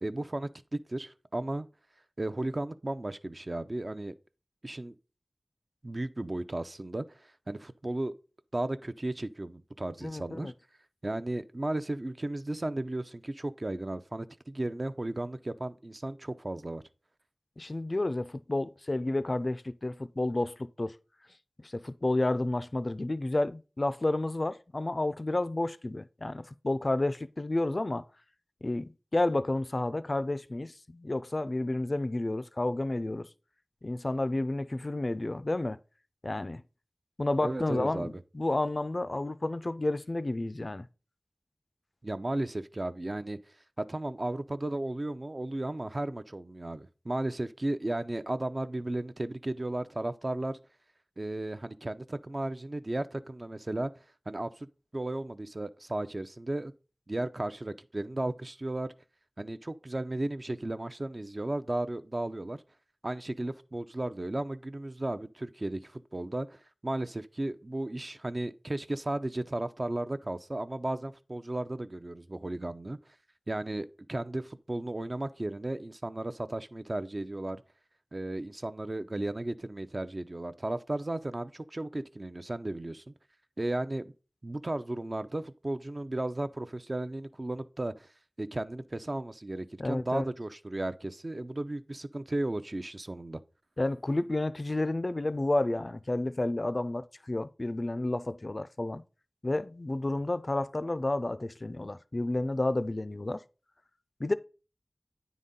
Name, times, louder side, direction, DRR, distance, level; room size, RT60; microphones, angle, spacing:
voice 1, 0.0-1.7 2.2-4.1 4.6-5.0 5.8-8.1 8.5-10.5 11.0-16.8 37.4-38.2 42.0-43.4 43.8-50.6 51.2-53.9 54.3-54.7 54.9-56.7 57.1-58.9 59.4-62.6 63.0-73.0 73.5-77.6 78.1-83.0 83.6-84.0 84.4-88.1 88.4-93.4, right 1 dB, 45° right, 0.5 m, -34 dB
voice 2, 10.0-10.5 17.6-21.0 21.6-28.0 28.6-33.3 33.8-35.8 36.2-36.6 37.2-40.9 89.8-90.3 93.8-99.0 99.4-103.4 104.2-104.3, left 2 dB, 45° left, 0.4 m, -31 dB
9.2 x 4.0 x 3.7 m
wide cardioid pair, 60°, 0 cm